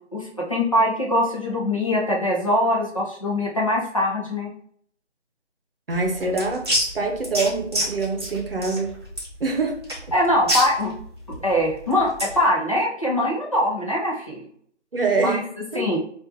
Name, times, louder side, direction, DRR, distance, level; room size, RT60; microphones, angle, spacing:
voice 1, 0.1-4.5 10.1-10.9 11.4-14.5 15.2-15.4 15.7-16.0, left 1 dB, 30° left, -3 dB, 0.7 m, -22 dB
sound 1, 5.9-12.4, equal, 20° right, 0.9 m, -28 dB
voice 2, 5.9-6.7 6.9-8.9 9.4-9.8 14.9-16.0, right 3 dB, 50° right, 3 dB, 0.8 m, -25 dB
5.1 x 2.5 x 2.7 m, 0.62 s
figure-of-eight pair, 165°, 36 cm